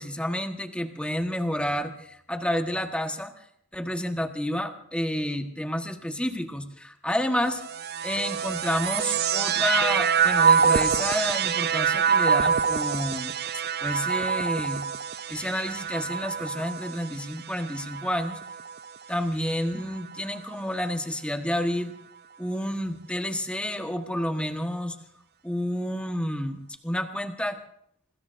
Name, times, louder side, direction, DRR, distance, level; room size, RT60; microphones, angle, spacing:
voice 1, 0.0-3.4 3.7-7.6 8.0-13.3 13.8-14.8 15.3-18.4 19.1-21.9 22.4-25.0 25.4-27.6, left 1 dB, 5° left, 5 dB, 1.4 m, -29 dB
sound 1, 7.5-19.0 19.8-20.5, right 7 dB, 50° right, 0.6 m, -26 dB
26.5 x 20.5 x 2.6 m, 0.68 s
head